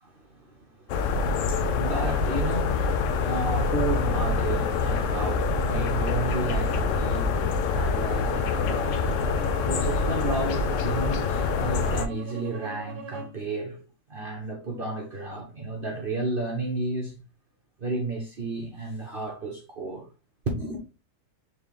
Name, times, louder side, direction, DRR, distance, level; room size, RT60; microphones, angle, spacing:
voice 1, 0.0-17.2 17.8-20.1 20.5-20.8, right 2 dB, 50° right, 0.7 m, -33 dB
sound 1, 0.9-12.1, left 4 dB, 80° left, 0.6 m, -25 dB
Bowed string instrument, 8.3-13.4, right 3 dB, 80° right, 1.3 m, -41 dB
3.9 x 3.0 x 3.3 m
omnidirectional pair, 1.9 m